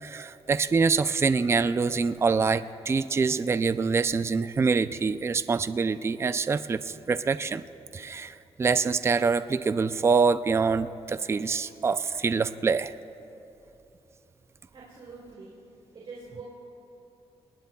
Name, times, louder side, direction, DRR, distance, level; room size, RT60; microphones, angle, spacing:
voice 1, 0.0-7.6 7.9-12.9, right 4 dB, 25° right, 12 dB, 0.4 m, -25 dB
voice 2, 14.7-15.5 15.9-16.4, right 4 dB, 50° right, -5 dB, 3.3 m, -44 dB
30.0 x 19.5 x 2.3 m, 2.8 s
wide cardioid pair, 140°, 11 cm